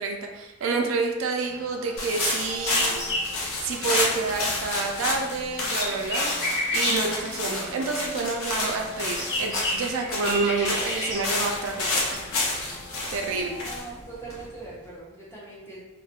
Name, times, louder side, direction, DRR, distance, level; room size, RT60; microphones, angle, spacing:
voice 1, 0.0-3.0 3.6-6.3 6.7-11.9 12.1-12.2 13.1-13.6, right 4 dB, 65° right, 2 dB, 0.3 m, -28 dB
sound 1, 1.4-13.8, left 3 dB, 5° right, 1.1 m, -46 dB
sound 2, 2.0-14.8, left 2 dB, 80° left, 0.5 m, -30 dB
sound 3, 2.5-4.3 4.6-8.2 8.7-13.0, left 1 dB, 55° left, 1.2 m, -32 dB
voice 2, 13.3-15.8, right 3 dB, 10° left, -6 dB, 0.5 m, -41 dB
2.3 x 2.1 x 2.7 m, 1.1 s
head